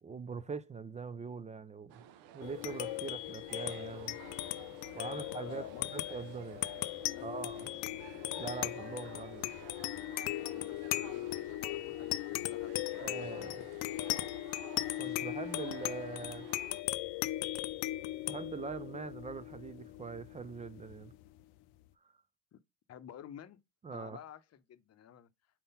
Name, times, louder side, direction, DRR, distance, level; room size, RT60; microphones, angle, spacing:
voice 1, 0.0-2.0 2.3-4.2 4.9-6.6 7.2-7.7 8.4-9.5 13.0-13.6 15.0-16.5 18.3-21.1 23.8-24.2, right 5 dB, 20° right, 0.3 m, -42 dB
sound 1, 1.9-16.8, right 10 dB, 85° right, 0.7 m, -53 dB
sound 2, 2.4-21.3, left 17 dB, 85° left, 0.5 m, -38 dB
voice 2, 5.1-6.1 7.0-7.9 10.5-13.5 22.5-22.6 22.9-23.6 23.9-25.3, left 10 dB, 40° left, 0.8 m, -52 dB
4.6 x 3.8 x 5.5 m
cardioid pair, 105°, 37 cm